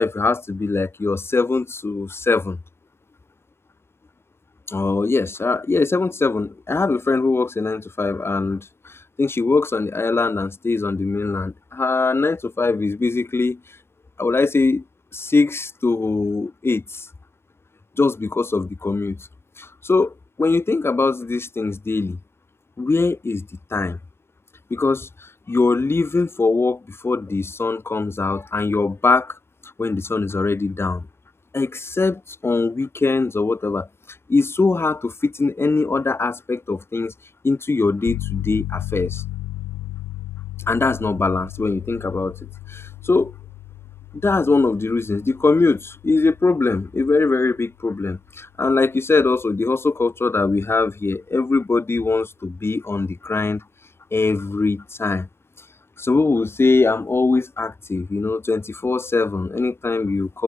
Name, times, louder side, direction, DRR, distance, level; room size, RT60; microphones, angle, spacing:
voice 1, 0.0-2.6 4.7-8.9 9.2-13.6 14.2-14.8 15.1-17.1 18.0-19.2 19.6-20.1 20.4-22.2 22.8-24.0 24.7-29.4 29.8-31.1 31.5-33.9 34.3-37.1 37.4-39.2 40.7-42.4 42.7-43.3 44.2-53.6 54.1-55.3 56.0-60.4, left 3 dB, 10° left, 0.4 m, -21 dB
sound 1, 38.1-48.6, left 18 dB, 85° left, 0.5 m, -34 dB
cardioid pair, 90°, 20 cm